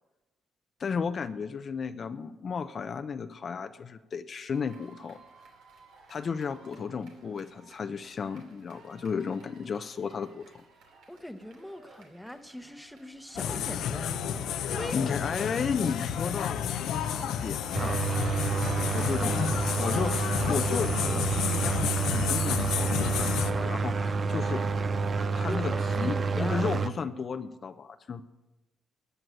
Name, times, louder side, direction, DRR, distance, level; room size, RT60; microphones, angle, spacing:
voice 1, 0.8-5.2 6.1-10.6 14.9-18.2 18.9-24.6 25.2-28.2, left 6 dB, 45° left, 9 dB, 0.7 m, -34 dB
sound 1, 4.5-21.8, right 3 dB, 85° right, 2.8 m, -53 dB
voice 2, 11.1-15.0 25.5-26.7, equal, ahead, 7 dB, 1.1 m, -41 dB
sound 2, 13.3-23.5, left 9 dB, 85° left, 0.8 m, -31 dB
sound 3, 17.7-26.9, right 5 dB, 40° right, 0.6 m, -29 dB
14.0 x 7.9 x 9.2 m, 1.1 s
cardioid pair, 90°, 0 cm